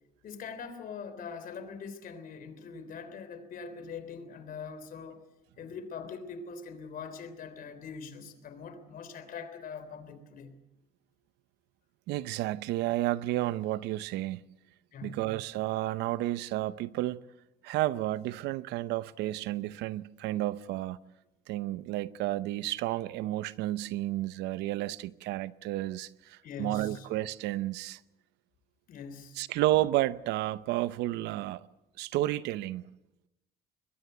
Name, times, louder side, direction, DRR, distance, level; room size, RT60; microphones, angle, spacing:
voice 1, 0.2-5.2 5.6-10.6 14.9-15.2 26.4-27.1 28.9-29.4, left 5 dB, 55° left, 3.4 m, -42 dB
voice 2, 12.1-14.4 15.0-17.2 17.6-21.0 21.5-28.0 29.4-31.7 32.0-32.9, right 15 dB, 90° right, 0.8 m, -31 dB
22.0 x 21.5 x 8.0 m
cardioid pair, 110°, 17 cm